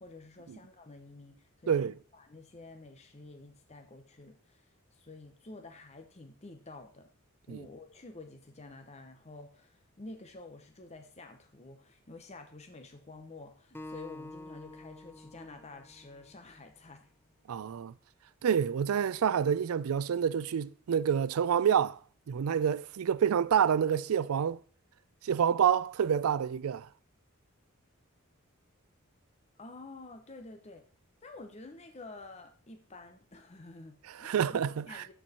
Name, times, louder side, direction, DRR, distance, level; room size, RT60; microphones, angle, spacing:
voice 1, 0.0-4.7 4.9-7.1 7.5-17.1 29.6-30.8 31.2-35.1, left 2 dB, 30° left, 0.8 m, -50 dB
Acoustic guitar, 13.7-17.0, left 2 dB, 10° left, 0.4 m, -48 dB
voice 2, 17.5-17.9 18.4-22.0 22.3-24.6 25.2-26.9 34.1-35.0, right 8 dB, 80° right, 0.4 m, -28 dB
13.0 x 4.6 x 4.2 m
head